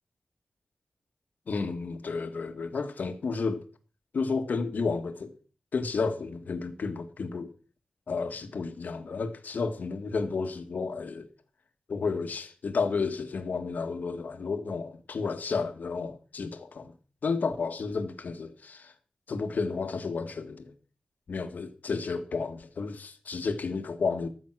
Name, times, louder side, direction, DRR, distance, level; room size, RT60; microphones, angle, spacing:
voice 1, 1.5-3.6 4.1-5.3 5.7-7.5 8.1-11.3 11.9-16.9 17.2-18.9 19.3-20.7 21.3-24.3, left 4 dB, 75° left, 1.4 m, -32 dB
14.0 x 7.2 x 6.0 m
wide cardioid pair, 120°, 3 cm